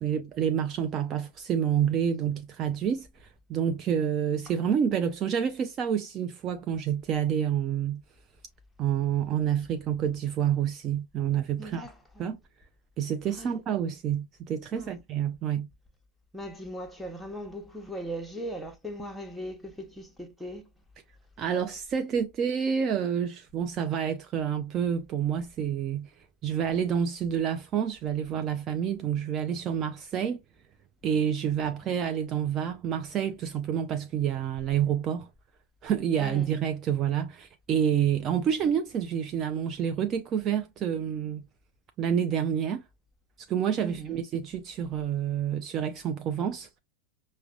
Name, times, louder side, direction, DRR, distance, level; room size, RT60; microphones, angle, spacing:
voice 1, 0.0-8.0 8.8-11.9 12.2-12.4 13.0-15.7 21.4-26.1 26.4-30.4 31.0-35.3 35.8-41.4 42.0-42.8 43.5-46.7, right 8 dB, 30° right, 0.4 m, -28 dB
voice 2, 11.6-12.2 13.3-13.5 14.7-15.0 16.3-20.6 31.8-31.9 36.2-36.5 43.8-44.2, equal, ahead, 0.8 m, -39 dB
5.7 x 2.1 x 2.3 m
figure-of-eight pair, 90°, 0 cm